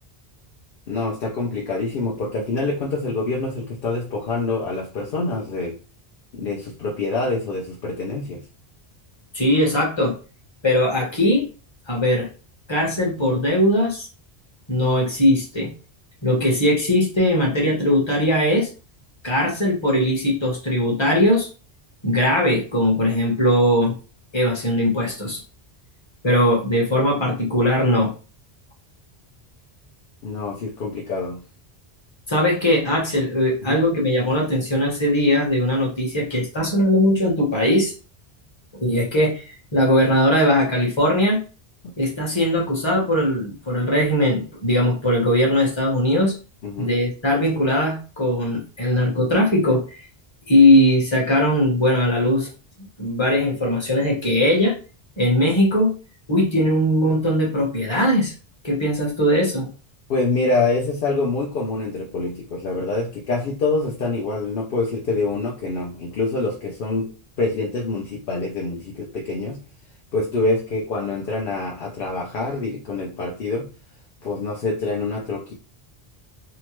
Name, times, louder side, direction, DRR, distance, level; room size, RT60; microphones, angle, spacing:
voice 1, 0.9-5.8 6.3-8.4 30.2-31.4 33.7-33.8 46.6-46.9 60.1-69.6 70.1-73.7 74.2-75.5, left 3 dB, 65° left, -2 dB, 0.8 m, -26 dB
voice 2, 9.3-10.1 10.6-11.5 11.9-12.3 12.7-14.1 14.7-15.7 16.2-18.7 19.2-21.5 22.0-23.9 24.3-25.4 26.2-28.1 32.3-37.9 38.7-39.4 39.7-41.4 42.0-46.3 46.8-50.0 50.5-52.5 53.0-54.7 55.2-55.9 56.3-58.3 58.6-59.7, left 1 dB, 30° left, -2 dB, 0.9 m, -19 dB
2.8 x 2.1 x 3.0 m, 0.35 s
omnidirectional pair, 1.1 m